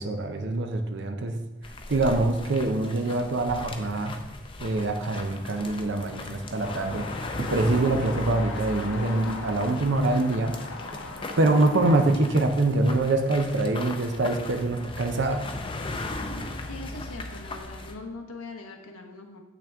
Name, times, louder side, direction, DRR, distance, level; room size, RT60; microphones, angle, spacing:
voice 1, 0.0-1.4 1.9-4.2 4.6-7.1 7.4-10.6 11.4-15.4, right 2 dB, 55° right, 5 dB, 0.5 m, -24 dB
sound 1, 1.6-18.0, left 2 dB, 25° left, 0.5 m, -38 dB
sound 2, 6.6-12.1, left 3 dB, 65° left, 1.0 m, -39 dB
voice 2, 16.7-19.4, left 3 dB, 90° left, 2 dB, 1.2 m, -41 dB
8.5 x 5.9 x 3.5 m, 1.1 s
head